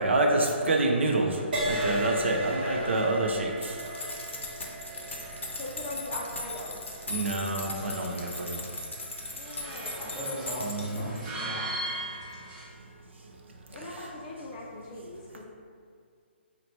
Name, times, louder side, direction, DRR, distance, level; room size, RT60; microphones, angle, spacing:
voice 1, 0.0-1.4 1.7-3.5 7.1-8.6 10.6-11.2, right 2 dB, 70° right, 1 dB, 0.5 m, -27 dB
sound 1, 1.4-12.7, right 1 dB, 20° right, 0.5 m, -42 dB
Crash cymbal, 1.5-9.2 9.8-10.1, equal, 50° right, 1.0 m, -36 dB
voice 2, 2.4-2.9 3.7-4.2 10.0-11.6, equal, 5° left, -9 dB, 0.9 m, -39 dB
sound 2, 3.6-11.3, left 2 dB, 80° left, 0.6 m, -39 dB
voice 3, 5.6-6.8 9.3-10.1 13.7-15.4, left 2 dB, 30° left, -3 dB, 0.4 m, -40 dB
2.9 x 2.1 x 4.0 m, 2.1 s
figure-of-eight pair, 145°, 6 cm